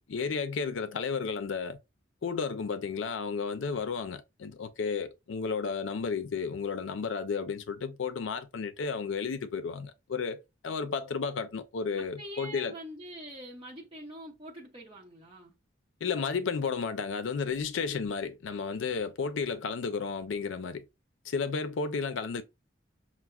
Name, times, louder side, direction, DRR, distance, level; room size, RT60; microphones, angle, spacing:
voice 1, 0.1-1.8 2.2-12.7 16.0-20.8 21.3-22.4, left 5 dB, 90° left, 0.5 m, -33 dB
voice 2, 11.9-15.5, right 1 dB, 25° right, 0.8 m, -45 dB
5.8 x 2.1 x 2.3 m
head